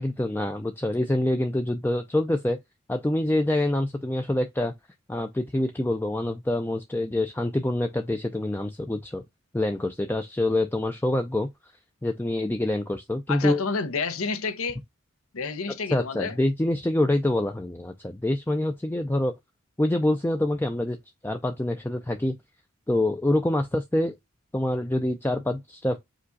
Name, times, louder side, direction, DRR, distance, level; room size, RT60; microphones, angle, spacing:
voice 1, 0.0-2.6 2.9-4.7 5.1-9.2 9.5-11.7 12.0-13.6 15.9-19.3 19.8-21.0 21.2-22.4 22.9-24.1 24.5-26.0, left 1 dB, 10° left, 0.4 m, -26 dB
voice 2, 13.3-14.8 15.3-16.4, left 4 dB, 75° left, 0.8 m, -29 dB
5.0 x 2.3 x 3.9 m
head